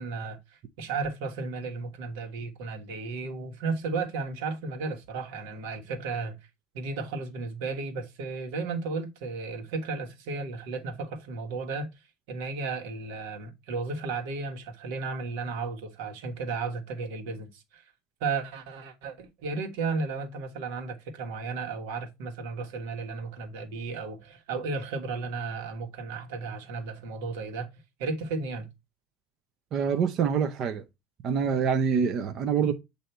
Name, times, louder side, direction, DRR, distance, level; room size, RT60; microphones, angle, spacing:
voice 1, 0.0-6.4 6.7-11.9 12.3-17.9 18.2-27.7 28.0-28.7, right 4 dB, 75° right, 1.3 m, -34 dB
voice 2, 29.7-30.8 31.2-32.7, right 6 dB, 35° right, 0.6 m, -25 dB
8.0 x 2.7 x 4.3 m
cardioid pair, 160°, 0 cm